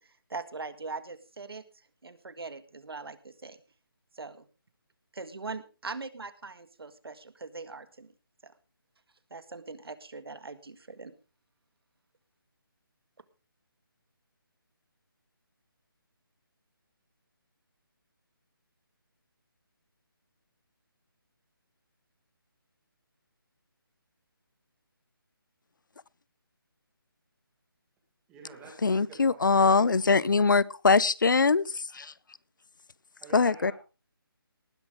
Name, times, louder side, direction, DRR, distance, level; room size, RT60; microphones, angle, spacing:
voice 1, 0.0-1.6 2.0-3.6 4.1-4.5 5.1-8.1 8.4-8.5 9.3-11.1, right 4 dB, 80° right, 1.8 m, -41 dB
voice 2, 28.3-30.3 33.2-33.7, right 5 dB, 5° right, 1.7 m, -48 dB
voice 3, 28.8-32.1 33.3-33.7, left 4 dB, 55° left, 0.6 m, -23 dB
19.0 x 10.5 x 3.6 m
hypercardioid pair, 180°, 12 cm